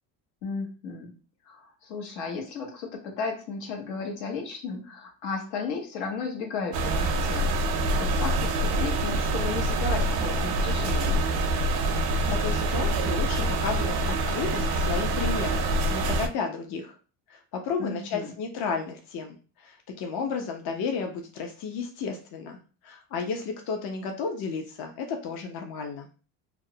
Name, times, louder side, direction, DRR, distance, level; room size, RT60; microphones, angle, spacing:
voice 1, 0.4-1.1 1.5-11.3 17.8-18.3, left 4 dB, 80° left, 1 dB, 0.9 m, -34 dB
sound 1, 6.7-16.3, right 1 dB, 55° right, 0.5 m, -26 dB
voice 2, 11.9-14.0 14.3-16.9 17.3-22.6 22.8-26.1, left 5 dB, 55° left, 4 dB, 0.6 m, -33 dB
2.4 x 2.0 x 2.6 m, 0.36 s
supercardioid pair, 85°, 47 cm